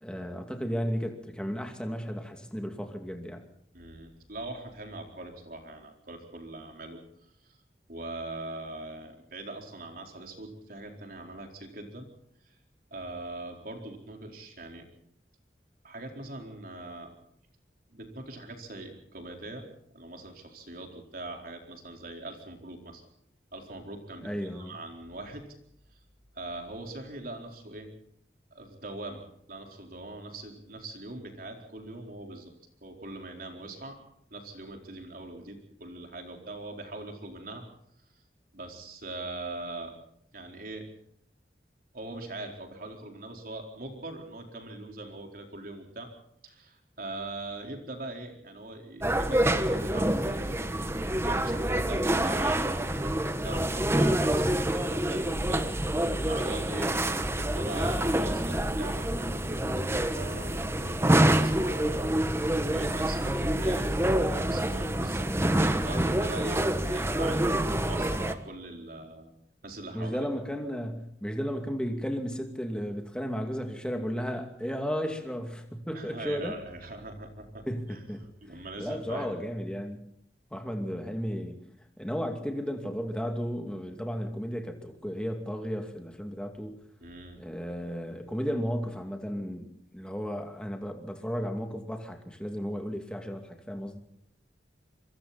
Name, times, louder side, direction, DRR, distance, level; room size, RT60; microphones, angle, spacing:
voice 1, 0.0-3.4 24.2-24.8 69.9-76.6 77.7-78.3 78.8-80.0 80.5-81.6 82.0-86.8 87.4-94.0, equal, 5° left, 2.5 m, -34 dB
voice 2, 3.7-7.0 7.4-7.6 7.9-12.1 12.4-12.6 12.9-14.9 15.8-17.1 17.9-19.7 19.9-23.0 23.5-25.5 25.9-26.0 26.3-27.9 28.5-29.2 29.5-32.5 32.8-34.0 34.3-37.6 38.5-39.9 40.3-40.9 41.9-46.1 46.4-56.9 57.4-67.5 67.8-69.3 69.6-70.2 75.9-77.6 77.9-78.0 78.4-79.4 87.0-87.4, right 2 dB, 55° right, 4.4 m, -42 dB
sound 1, 49.0-68.3, right 1 dB, 15° right, 1.2 m, -27 dB
25.0 x 24.5 x 4.3 m
head